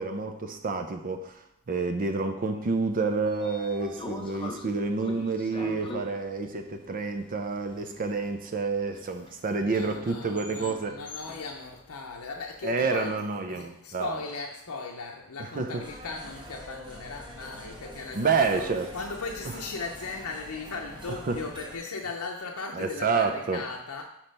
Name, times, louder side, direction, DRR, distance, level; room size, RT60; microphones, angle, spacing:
voice 1, 0.0-10.9 12.6-14.2 15.4-15.7 18.1-18.9 21.3-21.4 22.7-23.6, right 4 dB, 40° right, 6 dB, 0.5 m, -29 dB
Train / Sliding door, 2.8-13.0, left 2 dB, 25° left, 0.7 m, -44 dB
voice 2, 9.6-24.0, left 4 dB, 80° left, 1 dB, 0.7 m, -38 dB
sound 1, 15.8-21.8, equal, 20° right, 1.0 m, -45 dB
6.2 x 4.3 x 5.2 m, 0.78 s
head